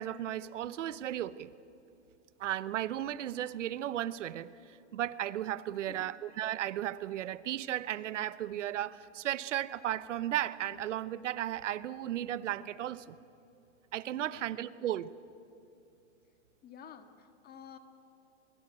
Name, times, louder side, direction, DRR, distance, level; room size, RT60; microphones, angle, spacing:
voice 1, 0.0-1.5 2.4-13.2 13.9-15.1, right 12 dB, 85° right, 16 dB, 1.0 m, -35 dB
voice 2, 5.7-6.1 14.1-14.4 16.6-17.8, left 8 dB, 25° left, 7 dB, 1.6 m, -51 dB
23.0 x 22.5 x 8.9 m, 2.6 s
hypercardioid pair, 135°, 36 cm